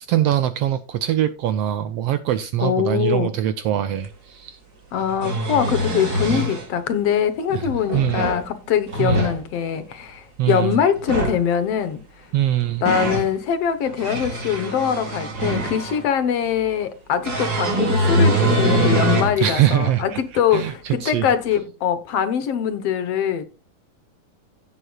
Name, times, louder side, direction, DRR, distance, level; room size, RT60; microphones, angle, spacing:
voice 1, 0.1-4.6 7.5-8.2 9.0-9.3 10.4-10.8 12.3-12.8 19.4-20.2 20.5-21.3, right 12 dB, 80° right, 1.5 m, -22 dB
voice 2, 2.6-3.3 4.9-12.0 12.8-23.4, left 8 dB, 65° left, 1.9 m, -23 dB
sound 1, 4.0-4.1 5.0-6.7 7.7-8.4 8.9-9.4 11.0-11.4 12.4-13.3 13.9-16.0 17.2-19.4 19.9-20.0 21.5-21.6, right 1 dB, 35° right, 2.8 m, -22 dB
16.5 x 7.8 x 2.3 m
omnidirectional pair, 3.3 m